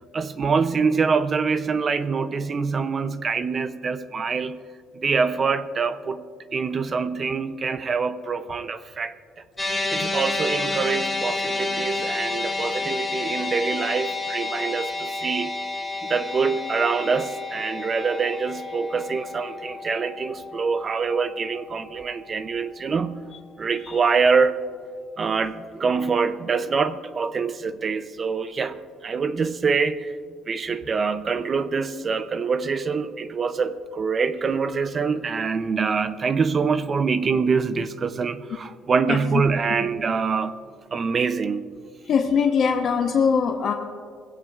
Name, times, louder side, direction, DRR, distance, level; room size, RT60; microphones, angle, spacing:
voice 1, 0.1-4.6 4.9-6.2 6.5-9.1 9.9-15.6 16.0-23.2 23.6-24.6 25.2-30.2 30.5-40.6 40.9-41.7, right 5 dB, 30° right, 12 dB, 0.5 m, -25 dB
sound 1, 9.6-22.0, left 3 dB, 5° left, 2.4 m, -30 dB
voice 2, 42.0-43.7, left 6 dB, 45° left, 2 dB, 0.9 m, -21 dB
21.0 x 16.0 x 2.4 m, 2.1 s
cardioid pair, 145°, 0 cm